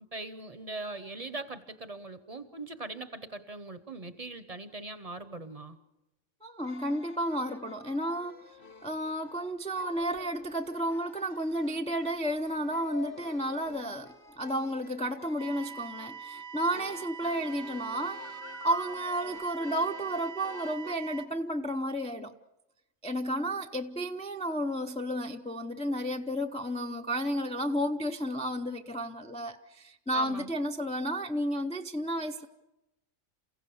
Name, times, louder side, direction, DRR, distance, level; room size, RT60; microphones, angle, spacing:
voice 1, 0.1-5.8 30.1-30.5, right 2 dB, 35° right, 12 dB, 0.8 m, -41 dB
voice 2, 6.4-8.4 8.8-18.2 18.6-22.3 23.0-32.5, equal, 10° left, 5 dB, 0.4 m, -32 dB
sound 1, 6.6-20.9, left 3 dB, 45° left, 1.4 m, -48 dB
sound 2, 15.4-21.3, right 6 dB, 75° right, 1.4 m, -44 dB
28.5 x 16.0 x 7.0 m, 0.95 s
omnidirectional pair, 1.4 m